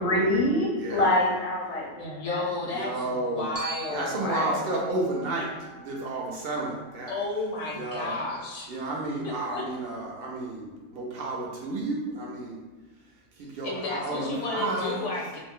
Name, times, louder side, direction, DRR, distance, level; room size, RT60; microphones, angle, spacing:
voice 1, 0.0-2.4 3.9-4.7, left 1 dB, 40° left, -3 dB, 0.5 m, -26 dB
voice 2, 0.8-1.2 2.7-3.5 3.9-7.1 7.7-8.1 8.7-12.6 13.4-15.0, right 2 dB, 60° right, -2 dB, 0.7 m, -31 dB
voice 3, 2.0-4.3 7.1-8.9 9.2-9.7 13.6-15.4, left 3 dB, 70° left, -1 dB, 0.9 m, -33 dB
Glockenspiel, 3.5-7.7, right 5 dB, 25° right, 0.5 m, -43 dB
2.5 x 2.1 x 3.5 m, 1.3 s
omnidirectional pair, 1.3 m